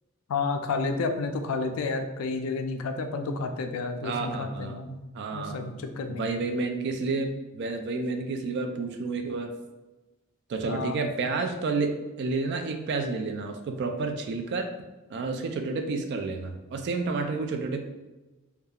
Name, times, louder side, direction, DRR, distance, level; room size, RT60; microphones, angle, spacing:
voice 1, 0.3-5.0 5.3-6.3 10.7-11.0, left 3 dB, 75° left, 6 dB, 0.3 m, -31 dB
voice 2, 4.0-4.8 5.1-5.7 6.1-9.5 10.5-14.7 15.1-17.8, right 3 dB, 55° right, 5 dB, 0.3 m, -30 dB
2.3 x 2.3 x 2.7 m, 1.1 s
head